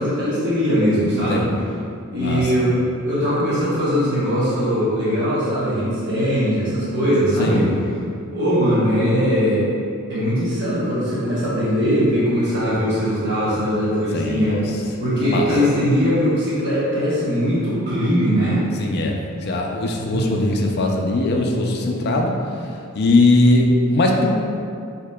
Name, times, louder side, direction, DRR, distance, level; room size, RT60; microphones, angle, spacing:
voice 1, 0.0-1.4 2.1-2.8 3.1-7.7 8.3-9.7 10.1-14.7 15.0-18.7 20.0-20.6, equal, 50° right, -10 dB, 1.1 m, -20 dB
voice 2, 1.3-1.6 2.2-2.5 7.4-7.8 14.1-14.6 15.2-15.5 18.8-22.3 23.0-24.3, left 2 dB, 45° left, 1 dB, 0.4 m, -20 dB
6.5 x 2.8 x 2.2 m, 2.4 s
head